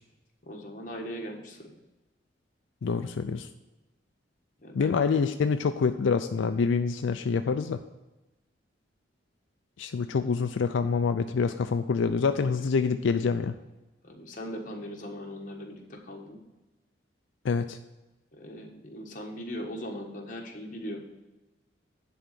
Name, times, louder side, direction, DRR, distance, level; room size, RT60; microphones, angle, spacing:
voice 1, 0.4-1.7 4.6-5.0 12.4-12.7 14.0-16.4 18.3-21.0, equal, 45° left, 1 dB, 1.4 m, -39 dB
voice 2, 2.8-3.5 4.7-7.8 9.8-13.5 17.4-17.8, left 5 dB, 85° left, 8 dB, 0.4 m, -26 dB
10.5 x 3.9 x 7.5 m, 1.1 s
head